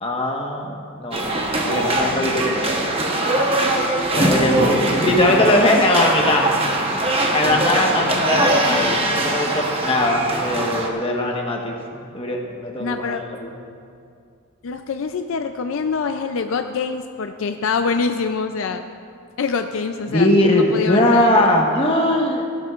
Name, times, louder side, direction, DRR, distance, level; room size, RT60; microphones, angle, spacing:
voice 1, 0.0-3.5 4.1-6.5 7.3-13.5 20.1-22.4, left 1 dB, 25° left, 0 dB, 1.2 m, -20 dB
sound 1, 1.1-10.9, right 1 dB, 25° right, 0.9 m, -21 dB
voice 2, 1.6-2.3 8.1-8.5 12.8-13.2 14.6-18.8 19.4-21.5, left 5 dB, 70° left, 7 dB, 0.4 m, -25 dB
16.5 x 12.5 x 2.4 m, 2.3 s
head